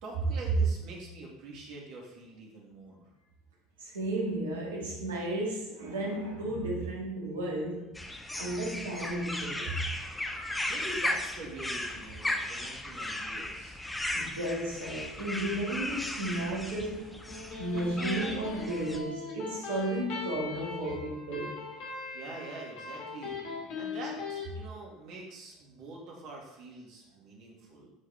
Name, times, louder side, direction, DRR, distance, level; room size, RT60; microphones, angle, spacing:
voice 1, 0.0-3.0 10.7-13.8 22.1-23.4 23.7-27.9, right 2 dB, 55° right, -2 dB, 2.3 m, -45 dB
voice 2, 3.8-8.0 8.4-9.8 14.1-17.3 17.6-21.6, right 1 dB, 75° right, -2 dB, 2.0 m, -33 dB
sound 1, 7.9-19.0, left 1 dB, 10° left, 0.9 m, -36 dB
Electric guitar, 17.1-24.5, left 4 dB, 60° left, 2.5 m, -40 dB
9.7 x 4.9 x 3.6 m, 0.94 s
figure-of-eight pair, 70°, 0 cm